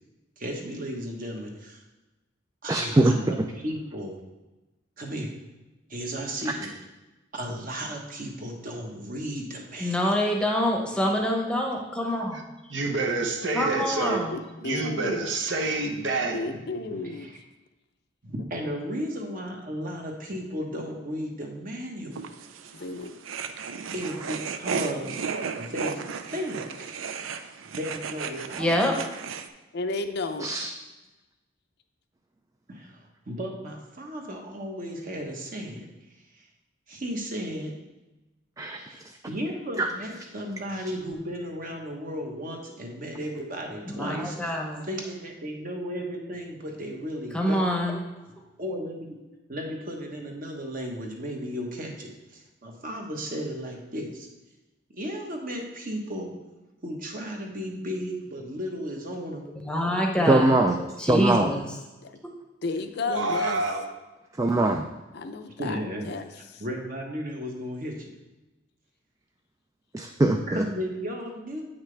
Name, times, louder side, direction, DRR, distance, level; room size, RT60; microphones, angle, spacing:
voice 1, 0.4-1.8 2.6-4.2 5.0-5.3 5.9-6.7 7.3-10.3 17.2-17.3 18.2-22.3 23.9-25.2 25.6-26.0 26.3-26.6 27.7-28.9 32.7-35.8 36.9-37.7 38.9-39.0 39.3-47.7 48.6-49.2 49.5-54.3 54.9-56.3 56.8-59.4 65.6-66.1 66.6-68.1 70.5-71.6, equal, 45° right, 1 dB, 1.2 m, -34 dB
voice 2, 2.7-3.3 30.4-30.7 38.6-39.0 39.8-39.9 60.2-60.8 61.1-61.5 64.4-64.9 69.9-70.6, right 2 dB, 15° right, 4 dB, 0.3 m, -22 dB
voice 3, 9.8-12.5 13.5-14.4 28.6-29.0 43.9-44.9 47.3-48.0 59.6-61.7, equal, 5° left, 0 dB, 0.9 m, -26 dB
voice 4, 12.7-14.2 14.6-16.4 63.1-63.8, right 3 dB, 65° right, 3 dB, 1.0 m, -27 dB
voice 5, 14.3-15.3 16.3-17.3 22.7-23.1 29.7-30.5 62.0-62.2 62.6-63.6 65.1-66.6, left 3 dB, 55° left, 7 dB, 0.6 m, -33 dB
sound 1, 22.1-29.5, right 6 dB, 85° right, 0.5 m, -35 dB
8.6 x 5.8 x 3.3 m, 1.1 s
head